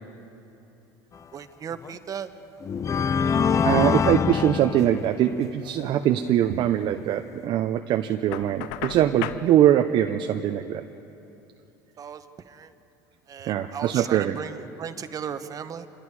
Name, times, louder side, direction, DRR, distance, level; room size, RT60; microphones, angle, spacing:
voice 1, 1.3-2.3 12.0-12.7 13.3-15.9, right 7 dB, 35° right, 10 dB, 1.2 m, -36 dB
sound 1, 1.7-1.9 2.6-5.4, left 6 dB, 30° left, 0.6 m, -24 dB
voice 2, 3.6-10.8 13.5-14.4, right 11 dB, 55° right, 7 dB, 0.8 m, -22 dB
Knock, 8.3-9.5, left 13 dB, 80° left, 0.7 m, -34 dB
27.0 x 21.5 x 4.9 m, 2.9 s
supercardioid pair, 95°, 10 cm